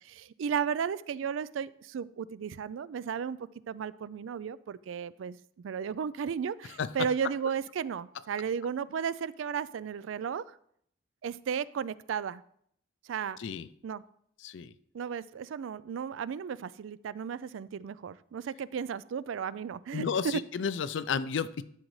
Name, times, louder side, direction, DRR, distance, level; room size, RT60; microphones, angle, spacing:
voice 1, 0.1-3.4 3.7-5.4 5.6-10.4 11.2-12.4 13.1-13.4 13.8-14.0 14.9-20.4, right 7 dB, 85° right, 18 dB, 0.3 m, -34 dB
voice 2, 13.4-13.7 14.4-14.7 19.9-21.6, left 6 dB, 70° left, 15 dB, 0.4 m, -32 dB
12.0 x 6.4 x 3.1 m, 0.67 s
head